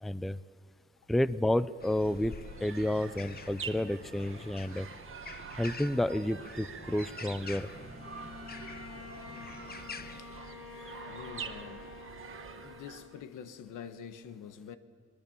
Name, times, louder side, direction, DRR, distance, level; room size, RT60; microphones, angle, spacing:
voice 1, 0.0-0.4 1.1-2.3 2.6-4.9 5.6-7.7, left 1 dB, ahead, 0.5 m, -30 dB
sound 1, 1.7-13.2, right 7 dB, 45° right, 1.3 m, -46 dB
sound 2, 1.8-10.2, left 5 dB, 30° left, 1.1 m, -48 dB
Bowed string instrument, 7.7-13.5, left 4 dB, 55° left, 6.6 m, -49 dB
voice 2, 9.2-9.6 10.2-10.4 11.1-11.9 12.6-14.8, left 8 dB, 85° left, 1.4 m, -46 dB
25.5 x 20.0 x 7.1 m
cardioid pair, 90°, 30 cm